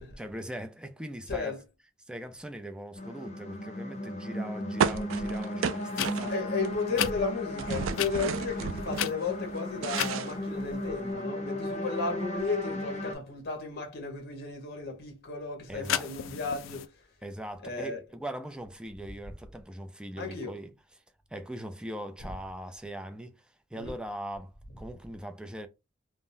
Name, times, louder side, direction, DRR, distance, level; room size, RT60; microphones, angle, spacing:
voice 1, 0.2-1.6 2.1-6.3 15.7-16.1 17.2-20.7 21.3-25.7, right 1 dB, 5° right, 0.4 m, -40 dB
voice 2, 1.3-1.6 6.3-16.9 17.6-18.0 20.2-20.5 23.7-24.0, left 4 dB, 55° left, 1.1 m, -34 dB
sound 1, 3.0-13.1, left 1 dB, 35° left, 0.6 m, -36 dB
sound 2, 4.8-6.7 6.9-9.1 9.5-11.0, right 7 dB, 85° right, 0.3 m, -33 dB
sound 3, 5.9-6.1 6.9-7.1 7.9-8.1 8.9-9.5 9.9-10.1 15.8-16.9, left 11 dB, 85° left, 0.3 m, -32 dB
3.6 x 2.0 x 2.6 m
head